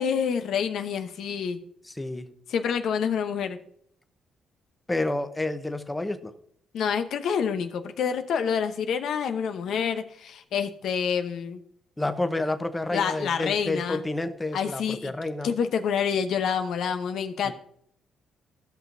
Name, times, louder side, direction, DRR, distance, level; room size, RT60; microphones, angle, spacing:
voice 1, 0.0-1.6 2.5-3.6 6.7-11.6 12.9-14.0 14.5-15.1 15.4-17.5, left 7 dB, 70° left, 8 dB, 0.9 m, -27 dB
voice 2, 1.9-2.3 4.9-6.3 12.0-15.5 17.4-17.5, left 2 dB, 15° left, 9 dB, 0.8 m, -29 dB
15.0 x 6.1 x 2.6 m, 0.68 s
cardioid pair, 90°, 0 cm